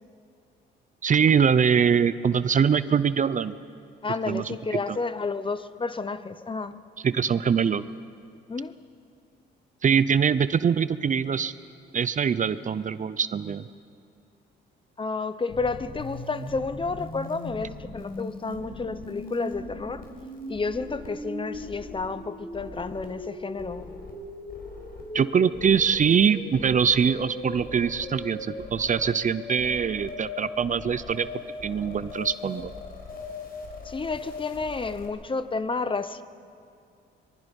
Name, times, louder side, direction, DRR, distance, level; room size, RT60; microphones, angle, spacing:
voice 1, 1.0-3.5 4.3-4.5 4.9-5.0 7.0-7.8 9.8-11.5 11.9-13.7 25.1-31.3 31.6-32.7, right 7 dB, 40° right, 15 dB, 0.6 m, -23 dB
voice 2, 4.0-6.8 8.5-8.7 15.0-20.0 20.5-23.9 33.8-36.2, left 4 dB, 25° left, 13 dB, 0.9 m, -31 dB
sound 1, 15.5-35.0, left 2 dB, 50° left, 5.2 m, -39 dB
24.5 x 23.5 x 5.4 m, 2.4 s
cardioid pair, 90°, 20 cm